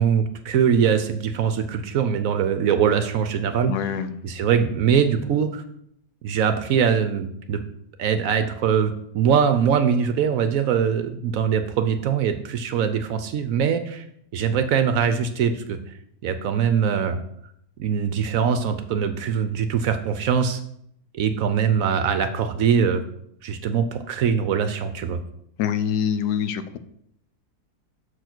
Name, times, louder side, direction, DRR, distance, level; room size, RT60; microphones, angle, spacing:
voice 1, 0.0-3.7 4.2-5.6 6.2-7.6 8.0-14.1 14.3-15.8 16.2-17.2 17.8-20.6 21.1-23.0 23.4-25.2, right 7 dB, 65° right, 9 dB, 0.9 m, -22 dB
voice 2, 3.7-4.1 25.6-26.8, left 8 dB, 80° left, 12 dB, 1.1 m, -25 dB
6.7 x 4.6 x 6.0 m, 0.72 s
omnidirectional pair, 1.7 m